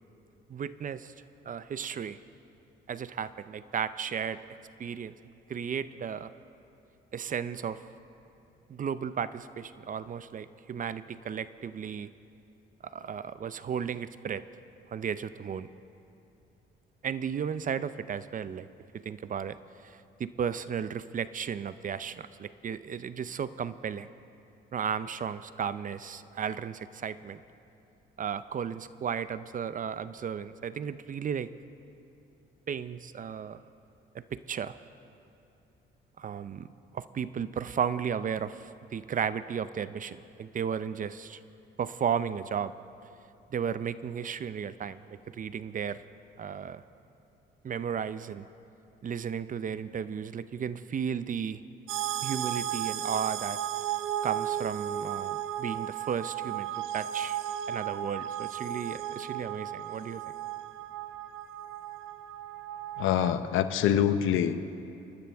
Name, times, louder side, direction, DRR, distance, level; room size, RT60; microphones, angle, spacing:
voice 1, 0.5-1.1 1.4-2.2 2.9-4.4 4.8-5.2 5.5-6.3 7.1-7.8 8.7-12.1 12.8-14.4 14.9-15.7 17.0-18.7 19.0-24.1 24.7-27.4 28.2-31.5 32.7-33.6 34.1-34.8 36.2-36.7 36.9-41.4 41.8-42.7 43.5-46.0 46.4-46.8 47.6-48.5 49.0-51.6 52.2-53.6 54.2-57.4 57.7-60.2, right 7 dB, 40° right, 14 dB, 0.6 m, -34 dB
sound 1, 51.9-63.3, right 11 dB, 85° right, 0.7 m, -35 dB
voice 2, 63.0-64.7, left 9 dB, 90° left, 10 dB, 0.8 m, -25 dB
28.0 x 12.5 x 3.5 m, 2.7 s
cardioid pair, 90°, 20 cm